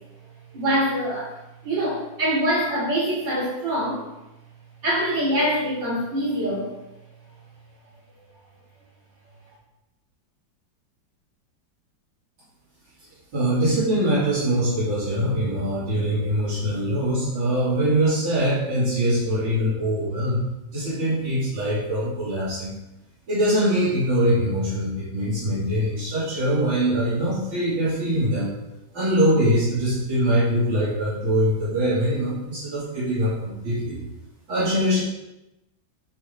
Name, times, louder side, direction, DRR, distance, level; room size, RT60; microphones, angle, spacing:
voice 1, 0.5-1.3 1.6-4.1 4.8-6.7, equal, 70° right, -8 dB, 3.8 m, -24 dB
voice 2, 13.3-20.4 20.7-22.8 23.3-28.5 28.9-34.0 34.5-35.0, equal, 90° right, -11 dB, 3.7 m, -23 dB
10.5 x 5.2 x 2.9 m, 0.98 s
omnidirectional pair, 2.1 m